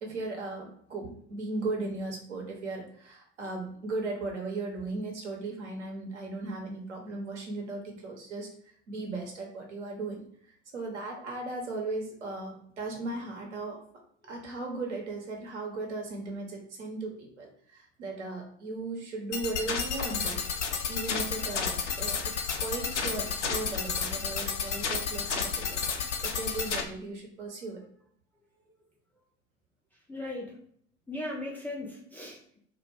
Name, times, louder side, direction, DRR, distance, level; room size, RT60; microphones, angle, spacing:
voice 1, 0.0-8.5 8.9-10.3 10.7-13.8 14.2-20.4 20.9-27.8, right 3 dB, 75° right, 0 dB, 0.8 m, -37 dB
sound 1, 19.3-26.8, left 6 dB, 80° left, 0.5 m, -31 dB
voice 2, 28.4-28.9 29.1-29.2 29.9-30.6 31.1-32.6, left 1 dB, 5° left, -4 dB, 0.3 m, -40 dB
2.2 x 2.1 x 3.2 m, 0.63 s
figure-of-eight pair, 70°, 35 cm